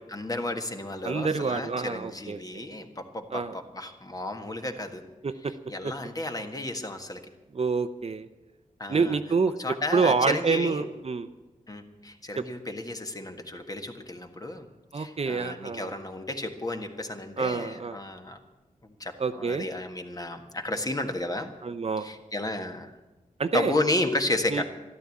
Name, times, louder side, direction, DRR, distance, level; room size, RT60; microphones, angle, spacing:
voice 1, 0.1-5.0 5.7-7.2 8.8-9.2 9.6-10.8 11.7-14.7 14.9-18.4 19.0-21.5 22.0-22.9 23.5-24.6, left 2 dB, 25° left, 5 dB, 1.6 m, -32 dB
voice 2, 1.0-2.6 3.3-3.5 5.2-5.5 5.8-5.9 7.5-8.3 8.9-11.3 12.4-12.5 14.9-15.9 17.4-18.0 19.2-19.7 21.6-22.1 23.4-23.7 24.5-24.6, right 4 dB, 45° right, 9 dB, 0.8 m, -27 dB
13.0 x 12.5 x 8.5 m, 1.1 s
wide cardioid pair, 95°, 14 cm